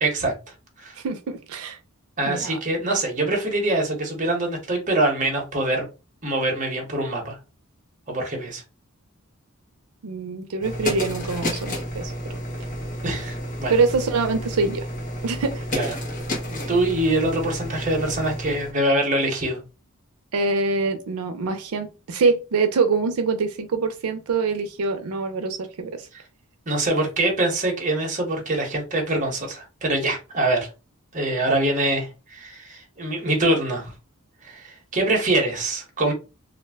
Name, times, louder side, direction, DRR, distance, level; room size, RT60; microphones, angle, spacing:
voice 1, 0.0-0.3 0.8-0.9 2.2-5.9 6.2-7.4 8.1-8.6 13.0-13.7 15.7-15.9 16.5-19.6 26.1-26.2 26.7-30.7 31.1-33.9 34.4-36.1, right 2 dB, 35° right, 0.8 m, -24 dB
voice 2, 1.0-1.8 2.2-2.6 10.0-12.4 13.7-14.9 15.2-15.9 20.3-26.1, right 4 dB, 90° right, 0.4 m, -25 dB
sound 1, 10.6-18.7, left 1 dB, 35° left, 0.8 m, -31 dB
2.4 x 2.1 x 3.3 m
head